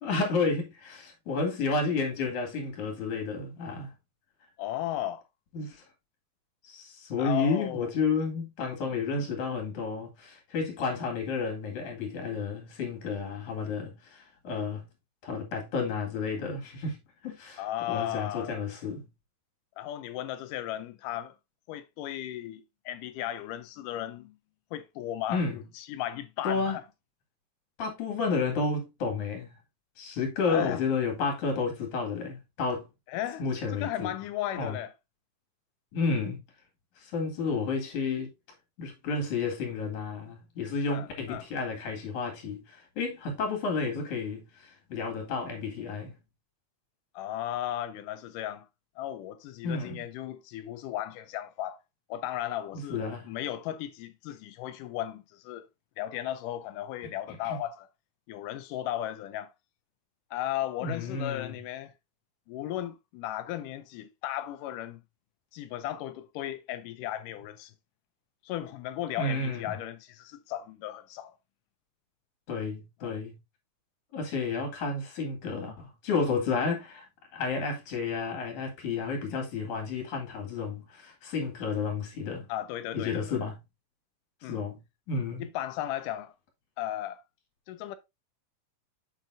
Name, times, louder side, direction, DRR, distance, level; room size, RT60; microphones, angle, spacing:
voice 1, 0.0-3.9 5.5-5.8 6.6-14.8 15.2-17.0 17.2-17.6 17.9-19.1 25.3-25.6 26.4-26.8 27.8-29.5 30.0-32.9 33.4-34.1 34.6-34.8 35.9-36.4 37.0-38.3 38.8-46.1 49.6-50.0 52.7-53.3 57.4-57.6 60.8-61.6 69.2-69.8 72.5-73.4 74.1-77.1 77.3-82.5 82.9-83.6 84.5-84.8 85.1-85.5, left 4 dB, 65° left, 3.4 m, -31 dB
voice 2, 4.6-5.2 7.2-7.9 8.8-8.9 17.6-18.6 19.8-21.4 21.7-24.4 24.7-26.8 30.5-30.8 33.1-33.4 33.7-34.9 40.9-41.5 47.2-48.7 49.0-51.8 52.1-55.7 56.0-57.9 58.3-59.5 60.3-61.9 62.5-65.0 65.5-67.7 68.4-71.3 73.0-73.2 82.5-83.5 84.4-84.6 85.4-86.3 86.8-87.2 87.7-88.0, left 12 dB, 80° left, 2.2 m, -35 dB
7.2 x 6.8 x 2.6 m
omnidirectional pair, 3.7 m